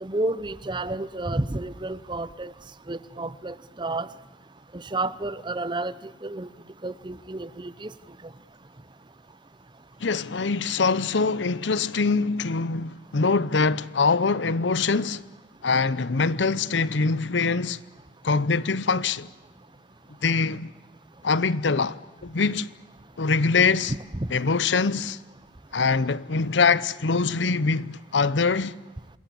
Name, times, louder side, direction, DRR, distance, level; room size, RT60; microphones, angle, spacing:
voice 1, 0.0-2.5 2.9-4.1 4.7-5.9 6.2-6.5 6.8-7.9 23.9-24.3, right 2 dB, 25° right, 0.8 m, -30 dB
voice 2, 10.0-15.2 15.6-17.8 18.2-19.3 20.2-20.7 21.2-22.7 23.2-23.9 24.3-25.2 25.7-28.7, left 4 dB, 90° left, 0.8 m, -23 dB
27.5 x 21.5 x 8.6 m
head